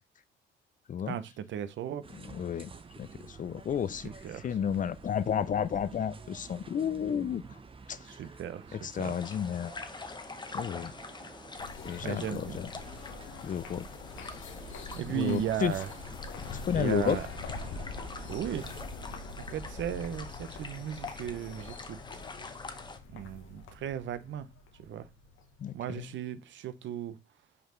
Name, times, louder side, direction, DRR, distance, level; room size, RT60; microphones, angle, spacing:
voice 1, 1.1-2.1 4.0-4.5 8.0-9.2 12.0-12.6 15.0-15.9 16.7-17.3 18.3-18.7 19.4-22.6 23.1-24.5 24.8-25.1 25.7-27.2, right 10 dB, 70° right, 0.7 m, -36 dB
sound 1, 2.0-18.9, right 5 dB, 25° right, 0.7 m, -50 dB
voice 2, 2.3-7.4 7.9-8.2 8.7-9.7 10.5-10.9 11.9-12.7 13.4-13.9 15.1-15.7 16.5-17.2 25.6-26.0, left 8 dB, 40° left, 0.4 m, -32 dB
sound 2, 9.0-23.0, left 3 dB, 20° left, 0.9 m, -45 dB
sound 3, 11.6-26.0, left 3 dB, 80° left, 1.1 m, -44 dB
5.4 x 4.7 x 3.7 m
cardioid pair, 90°, 20 cm